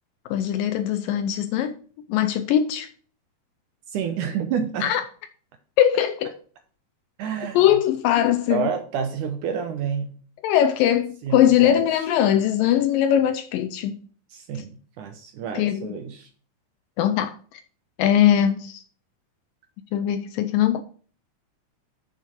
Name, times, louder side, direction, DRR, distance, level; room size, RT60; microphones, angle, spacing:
voice 1, 0.3-1.8 2.1-2.9 4.8-5.0 5.8-6.4 7.6-8.7 10.4-14.0 15.5-15.9 17.0-17.6 18.0-18.8 19.9-20.8, left 10 dB, 80° left, 2.1 m, -21 dB
voice 2, 3.9-4.9 7.2-7.6 8.5-10.1 11.2-12.1 14.3-16.3, right 7 dB, 70° right, 2.0 m, -29 dB
7.5 x 5.5 x 6.3 m
omnidirectional pair, 4.4 m